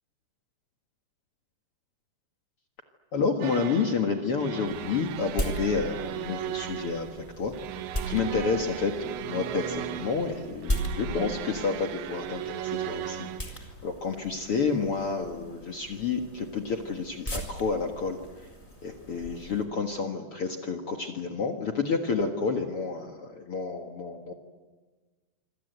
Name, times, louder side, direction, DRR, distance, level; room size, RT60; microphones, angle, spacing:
voice 1, 3.1-7.8 8.1-18.5 18.8-24.3, left 4 dB, 70° left, 3 dB, 1.3 m, -30 dB
sound 1, 3.4-13.4, right 12 dB, 85° right, 3.4 m, -37 dB
sound 2, 4.6-19.7, equal, 10° left, 3.9 m, -38 dB
26.5 x 26.0 x 8.1 m, 1.3 s
omnidirectional pair, 5.2 m